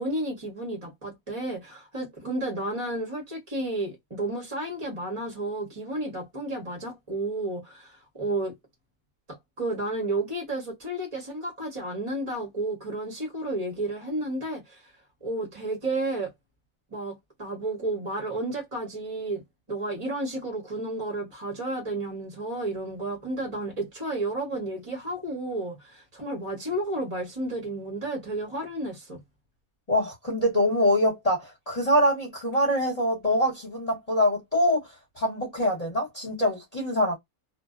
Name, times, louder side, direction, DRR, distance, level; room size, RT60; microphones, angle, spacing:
voice 1, 0.0-8.5 9.3-14.9 15.2-16.3 16.9-19.4 19.7-29.2, right 2 dB, 30° right, 0.7 m, -32 dB
voice 2, 29.9-34.8 35.2-37.1, equal, 30° left, 1.0 m, -24 dB
2.5 x 2.1 x 2.3 m
omnidirectional pair, 1.5 m